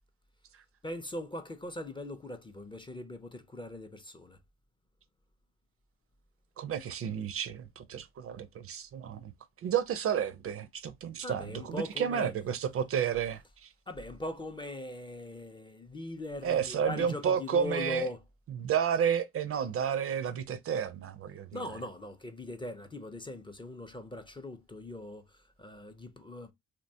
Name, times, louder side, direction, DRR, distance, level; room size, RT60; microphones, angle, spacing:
voice 1, 0.8-4.4 11.2-12.3 13.9-18.2 21.5-26.5, left 1 dB, 15° left, 0.4 m, -40 dB
voice 2, 6.6-9.3 9.6-13.7 16.4-18.1 18.5-21.5, right 8 dB, 50° right, 0.4 m, -31 dB
2.9 x 2.2 x 2.6 m
cardioid pair, 90°, 30 cm